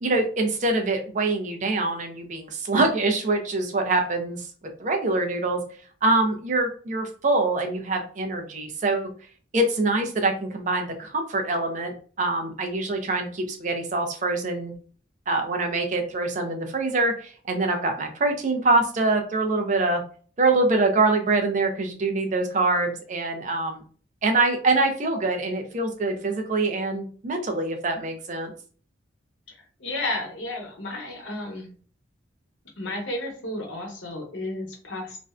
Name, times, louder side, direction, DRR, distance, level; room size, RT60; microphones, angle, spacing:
voice 1, 0.0-4.5 4.8-5.6 6.0-9.1 9.5-14.7 15.3-20.0 20.4-23.8 24.2-28.5, right 2 dB, 40° right, 4 dB, 0.4 m, -24 dB
voice 2, 29.8-31.7 32.8-35.2, left 2 dB, 85° left, 0 dB, 0.9 m, -32 dB
2.5 x 2.1 x 2.4 m, 0.43 s
head